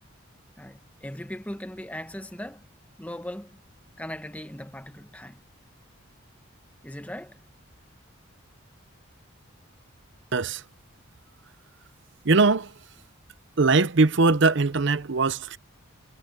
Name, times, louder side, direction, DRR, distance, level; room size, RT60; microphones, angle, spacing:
voice 1, 0.6-2.7 3.0-3.6 4.0-5.4 6.8-7.4, left 1 dB, 5° left, 1.4 m, -38 dB
voice 2, 10.3-10.6 12.2-12.8 13.6-15.6, right 3 dB, 60° right, 0.7 m, -21 dB
head